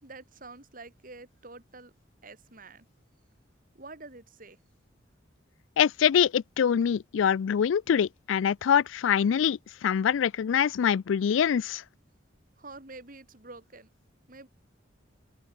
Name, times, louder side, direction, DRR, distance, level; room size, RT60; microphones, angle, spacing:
voice 1, 0.0-1.9 2.2-2.9 3.7-4.6 12.6-13.9 14.3-14.5, right 3 dB, 45° right, 3.4 m, -47 dB
voice 2, 5.8-11.8, left 8 dB, 80° left, 0.4 m, -24 dB
head